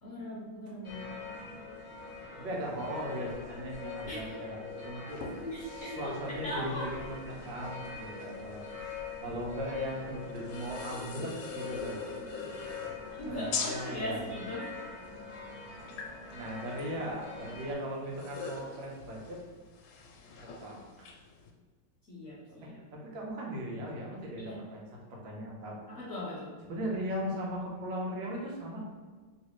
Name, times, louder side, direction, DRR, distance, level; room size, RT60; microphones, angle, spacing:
voice 1, 0.0-1.2 4.1-4.3 5.4-6.9 13.1-14.6 22.1-22.8 24.4-24.6 25.9-26.5, left 1 dB, 60° left, -7 dB, 0.8 m, -39 dB
sound 1, 0.8-17.7, left 4 dB, 25° left, 0.7 m, -44 dB
voice 2, 2.4-5.2 5.7-12.0 13.2-14.2 16.3-19.4 20.4-21.1 22.6-24.8 25.1-25.8 26.7-28.8, equal, 70° right, -2 dB, 1.5 m, -38 dB
sound 2, 5.1-21.5, left 5 dB, 75° left, 1.3 m, -44 dB
3.2 x 3.2 x 3.0 m, 1.4 s
omnidirectional pair, 2.3 m